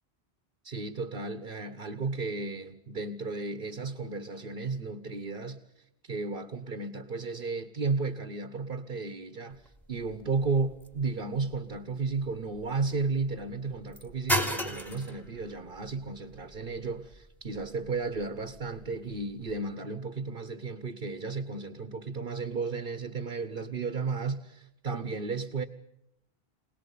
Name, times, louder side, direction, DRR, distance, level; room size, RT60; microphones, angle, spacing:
voice 1, 0.6-5.6 6.0-9.6 9.9-25.6, right 4 dB, 55° right, 1.5 m, -33 dB
sound 1, 9.5-19.6, equal, ahead, 2.3 m, -38 dB
26.5 x 19.0 x 8.6 m
omnidirectional pair, 1.1 m